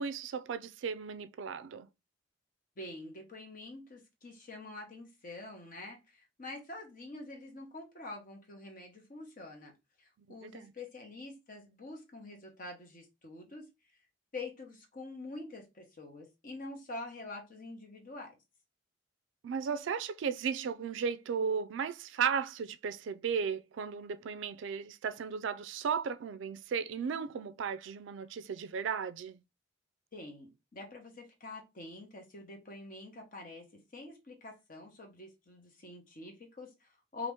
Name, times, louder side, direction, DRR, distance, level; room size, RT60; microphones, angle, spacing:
voice 1, 0.0-1.9 10.4-10.7 19.4-29.4, right 6 dB, 70° right, 0.3 m, -35 dB
voice 2, 2.8-9.7 10.0-13.7 14.3-18.3 30.1-37.3, left 2 dB, 45° left, 1.0 m, -46 dB
2.8 x 2.5 x 3.4 m
head